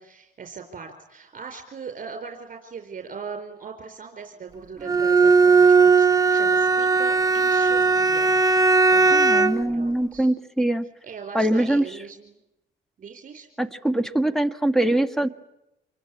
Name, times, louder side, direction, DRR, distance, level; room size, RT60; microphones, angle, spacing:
voice 1, 0.0-8.4 8.9-10.3 11.0-12.4 13.0-13.5, right 5 dB, 40° right, 4 dB, 4.3 m, -40 dB
Bowed string instrument, 4.8-9.7, right 4 dB, 20° right, 0.9 m, -18 dB
voice 2, 9.1-10.9 11.3-12.0 13.6-15.3, right 1 dB, ahead, 11 dB, 1.7 m, -23 dB
26.5 x 23.0 x 8.7 m, 0.91 s
cardioid pair, 90°, 20 cm